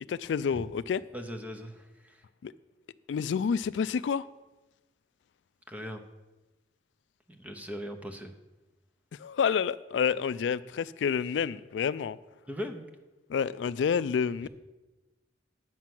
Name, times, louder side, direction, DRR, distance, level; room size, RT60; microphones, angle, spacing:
voice 1, 0.1-1.0 2.4-2.5 3.1-4.3 9.2-12.2 13.3-14.5, left 7 dB, 85° left, 16 dB, 0.3 m, -29 dB
voice 2, 1.1-2.2 5.7-6.0 7.3-8.3 12.5-12.8, equal, 10° right, 6 dB, 0.8 m, -39 dB
9.2 x 5.9 x 7.7 m, 1.1 s
head